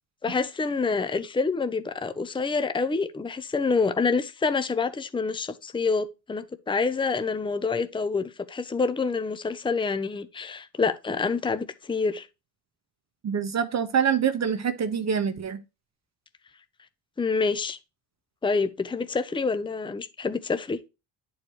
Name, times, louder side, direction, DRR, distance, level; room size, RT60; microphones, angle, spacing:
voice 1, 0.2-12.3 17.2-17.8 18.4-20.8, left 4 dB, 10° left, 0.7 m, -27 dB
voice 2, 13.2-15.6, right 7 dB, 40° right, 1.0 m, -25 dB
10.5 x 4.8 x 3.2 m
cardioid pair, 105°, 41 cm